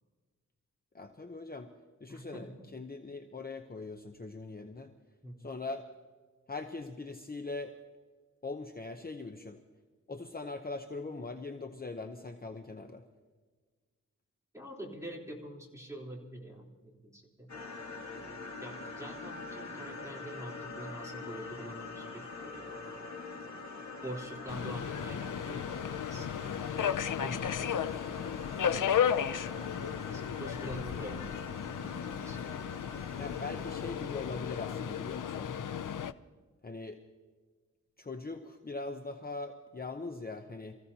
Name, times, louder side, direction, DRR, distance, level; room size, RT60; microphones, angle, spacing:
voice 1, 0.9-1.7 2.0-4.9 5.4-5.9 6.5-7.7 8.4-9.6 10.1-13.0 33.2-35.5 36.6-37.0 38.0-40.7, left 3 dB, 30° left, 5 dB, 0.8 m, -41 dB
voice 2, 2.1-2.5 5.2-5.6 14.5-17.5 18.2-18.4 18.6-22.9 24.0-26.6 27.2-27.9 28.7-29.2 29.8-32.6 33.2-33.7, equal, 10° right, -3 dB, 3.7 m, -46 dB
sound 1, 17.5-33.8, left 3 dB, 60° left, 1.9 m, -44 dB
Subway metro underground, 24.5-36.1, left 8 dB, 75° left, 0.6 m, -34 dB
27.5 x 15.5 x 2.9 m, 1.4 s
wide cardioid pair, 105°, 31 cm